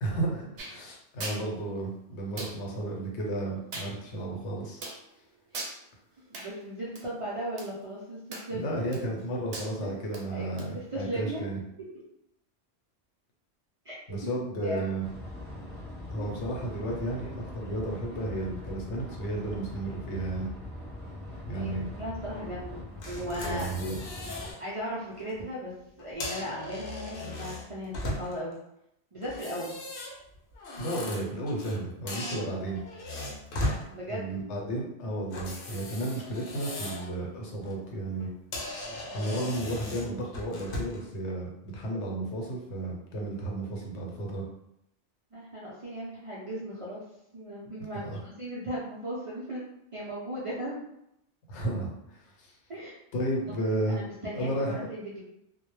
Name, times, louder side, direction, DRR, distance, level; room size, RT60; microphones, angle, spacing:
voice 1, 0.0-4.8 8.5-11.6 14.1-15.0 16.1-20.5 21.5-21.9 23.4-24.0 30.8-32.8 34.0-38.3 39.1-44.4 47.9-48.2 51.5-52.6 53.1-54.0 54.3-54.9, right 1 dB, 90° left, -1 dB, 1.0 m, -33 dB
sound 1, 0.6-0.7 1.2-1.4 2.4-2.5 3.7-3.9 4.8-5.0 5.5-5.7 6.3-6.5 6.9-7.0 7.6-7.7 8.3-8.6 8.9-9.2 9.5-9.7 10.1-10.2 10.6-10.7, right 2 dB, 80° right, 0.9 m, -38 dB
voice 2, 6.3-8.7 9.8-9.9 10.3-11.4 11.8-11.9 13.8-14.3 14.6-14.9 16.1-16.3 21.4-23.7 24.6-25.7 26.0-28.6 29.1-29.7 31.0-31.1 33.9-34.3 45.3-47.0 47.3-49.6 49.9-50.8 52.7-53.0 53.9-55.2, right 1 dB, 55° right, -7 dB, 0.3 m, -37 dB
sound 2, 15.0-24.5, left 1 dB, 5° left, 0.8 m, -41 dB
sound 3, 23.0-24.6 25.0-25.2 26.0-28.5 29.2-31.8 32.1-33.8 35.3-37.1 37.5-37.7 38.2-38.3 38.5-41.1, left 1 dB, 60° left, 0.7 m, -37 dB
2.1 x 2.0 x 3.0 m, 0.79 s
omnidirectional pair, 1.2 m